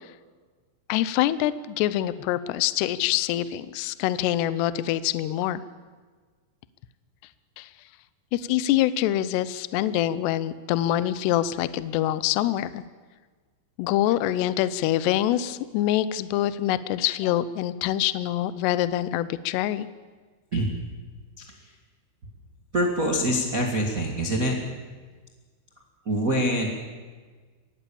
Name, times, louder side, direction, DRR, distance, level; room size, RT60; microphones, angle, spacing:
voice 1, 0.9-5.6 7.6-7.7 8.3-12.8 13.8-19.9, left 13 dB, 80° left, 15 dB, 2.5 m, -25 dB
voice 2, 22.7-24.6 26.0-26.7, equal, 90° right, 1 dB, 0.7 m, -24 dB
24.5 x 19.0 x 7.1 m, 1.4 s
omnidirectional pair, 5.7 m